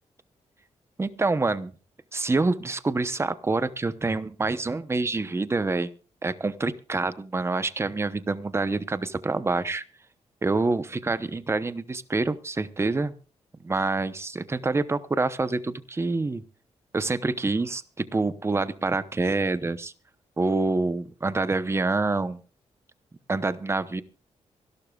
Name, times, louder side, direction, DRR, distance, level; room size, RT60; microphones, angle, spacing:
voice 1, 1.0-1.7 2.1-5.9 6.2-9.8 10.4-13.1 13.6-16.4 16.9-19.9 20.4-22.4 23.3-24.0, right 3 dB, 20° right, 13 dB, 0.8 m, -26 dB
25.0 x 12.0 x 2.4 m, 0.36 s
cardioid pair, 100°, 12 cm